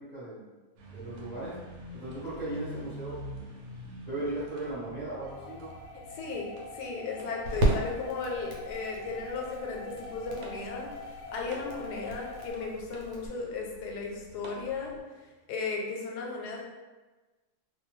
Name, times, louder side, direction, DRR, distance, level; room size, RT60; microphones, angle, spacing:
voice 1, 0.1-0.5 0.9-1.5 1.9-3.2 4.0-5.7, right 2 dB, 35° right, -11 dB, 0.7 m, -37 dB
sound 1, 0.8-15.0, equal, 70° right, 1.0 m, -47 dB
sound 2, 5.2-12.5, left 3 dB, 65° left, 0.9 m, -45 dB
sound 3, 5.4-13.3, right 1 dB, 85° right, 1.2 m, -35 dB
voice 2, 6.1-14.9 15.5-16.6, left 4 dB, 85° left, 0 dB, 1.1 m, -35 dB
2.5 x 2.2 x 3.0 m, 1.2 s
omnidirectional pair, 1.7 m